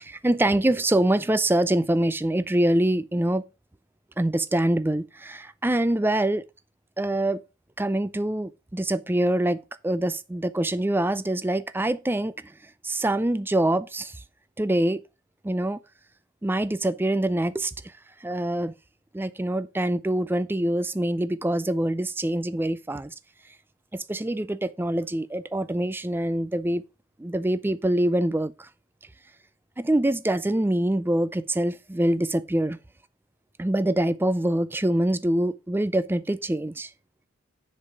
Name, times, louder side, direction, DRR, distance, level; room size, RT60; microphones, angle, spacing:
voice 1, 0.0-3.4 4.2-6.4 7.0-7.4 7.8-12.3 12.8-14.2 14.6-15.0 15.4-15.8 16.4-17.7 18.2-18.7 19.1-23.1 23.9-26.8 27.2-28.7 29.8-32.8 33.6-36.9, right 1 dB, 10° right, 0.4 m, -25 dB
6.9 x 5.4 x 5.0 m
head